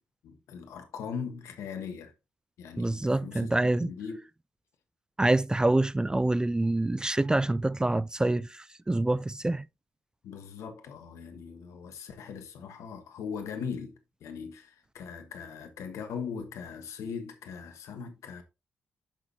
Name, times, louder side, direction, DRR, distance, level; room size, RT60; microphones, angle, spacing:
voice 1, 0.2-2.1 2.6-4.2 10.2-18.4, left 6 dB, 75° left, 1.3 m, -40 dB
voice 2, 2.8-3.9 5.2-9.7, right 2 dB, 15° right, 0.3 m, -26 dB
8.8 x 6.0 x 2.9 m
hypercardioid pair, 45°, 5 cm